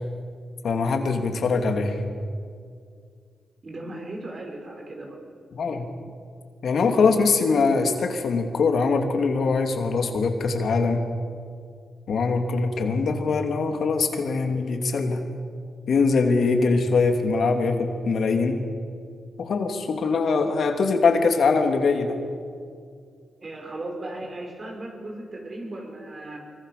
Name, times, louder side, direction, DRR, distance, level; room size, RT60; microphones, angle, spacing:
voice 1, 0.6-2.0 5.5-5.9 6.6-11.0 12.1-15.2 15.9-18.6 19.4-22.2, left 4 dB, 70° left, 5 dB, 3.0 m, -22 dB
voice 2, 3.6-5.2 23.4-26.4, right 2 dB, 45° right, 2 dB, 6.6 m, -36 dB
25.0 x 23.5 x 6.9 m, 2.2 s
cardioid pair, 70°, 0 cm